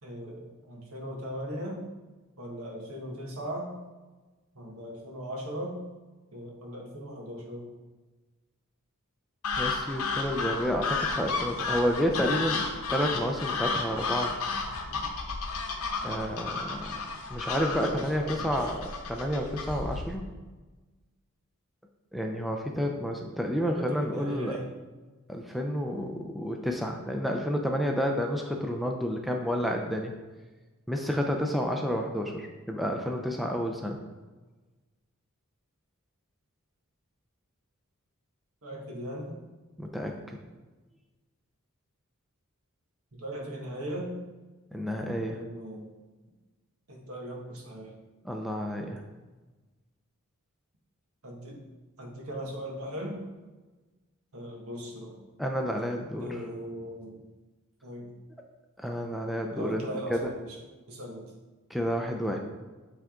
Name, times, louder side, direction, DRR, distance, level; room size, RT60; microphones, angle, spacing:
voice 1, 0.0-1.8 2.4-3.7 4.5-5.8 6.3-7.7 17.8-18.7 23.5-24.7 38.6-39.4 43.1-44.1 45.3-45.9 46.9-47.9 51.2-51.6 52.0-53.2 54.3-55.2 56.2-57.2 57.8-58.1 59.5-60.6 60.9-61.3, equal, 75° right, 0 dB, 1.4 m, -38 dB
sound 1, 9.4-20.2, left 4 dB, 75° left, 0.8 m, -32 dB
voice 2, 9.6-14.3 16.0-17.0 17.3-20.2 22.1-24.6 25.3-30.1 30.9-34.0 39.8-40.4 44.7-45.4 48.2-49.0 55.4-56.3 58.8-60.2 61.7-62.4, equal, ahead, 2 dB, 0.4 m, -30 dB
8.7 x 3.4 x 3.7 m, 1.2 s
head